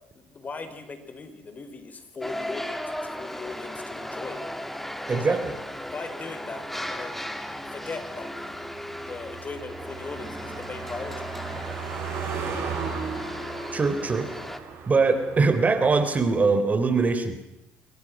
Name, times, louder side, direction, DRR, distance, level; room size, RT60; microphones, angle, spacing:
voice 1, 0.1-4.6 5.0-5.4 5.9-7.2 7.7-8.3 9.1-11.2, left 4 dB, 35° left, 9 dB, 4.4 m, -38 dB
sound 1, 2.2-14.6, left 1 dB, 5° left, 2.5 m, -36 dB
voice 2, 5.1-5.4 13.7-14.3 14.9-17.4, right 4 dB, 30° right, 10 dB, 3.5 m, -22 dB
Car passing by, 5.6-16.4, right 6 dB, 60° right, 7.7 m, -37 dB
26.5 x 23.5 x 6.1 m, 0.89 s
supercardioid pair, 70°, 5 cm